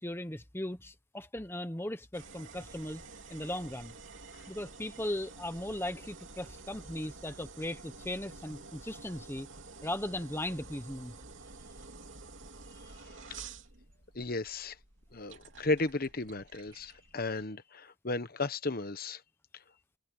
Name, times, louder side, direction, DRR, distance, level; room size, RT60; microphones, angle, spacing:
voice 1, 0.0-3.0 3.3-3.9 4.5-9.5 9.8-11.1, left 1 dB, 10° left, 1.1 m, -38 dB
sound 1, 2.1-17.5, right 4 dB, 60° right, 3.1 m, -50 dB
voice 2, 14.1-14.8 15.1-19.2, left 2 dB, 45° left, 1.2 m, -34 dB
head